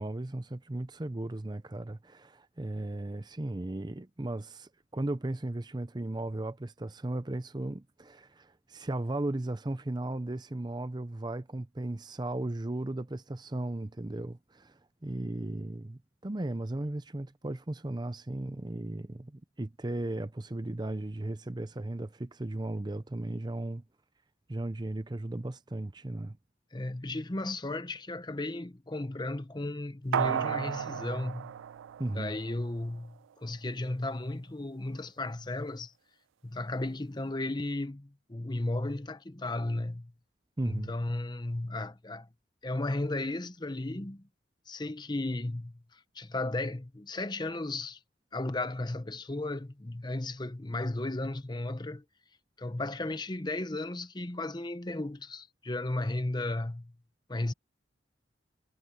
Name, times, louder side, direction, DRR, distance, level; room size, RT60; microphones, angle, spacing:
voice 1, 0.0-23.8 24.5-26.4 32.0-32.4 40.6-40.9, right 1 dB, 25° right, 0.6 m, -36 dB
voice 2, 26.7-31.5 32.1-35.9 36.4-40.1 40.6-42.3 42.6-44.3 44.7-48.0 48.3-52.0 52.6-56.9 57.3-57.5, left 2 dB, 25° left, 0.8 m, -34 dB
sound 1, 30.1-32.7 33.0-33.1, right 8 dB, 90° right, 0.3 m, -33 dB
head